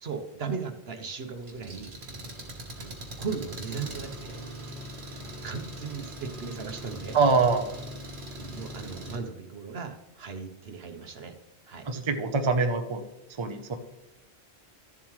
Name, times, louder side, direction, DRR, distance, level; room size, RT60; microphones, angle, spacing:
voice 1, 0.0-1.9 2.8-4.4 5.2-7.2 8.4-11.3 11.7-11.9, right 5 dB, 65° right, 7 dB, 1.2 m, -37 dB
Engine, 1.4-9.2, equal, 50° right, 1.4 m, -41 dB
voice 2, 7.1-7.7 11.9-13.0 13.4-13.8, right 4 dB, 30° right, 6 dB, 0.7 m, -24 dB
13.5 x 7.2 x 3.2 m, 0.95 s
omnidirectional pair, 1.1 m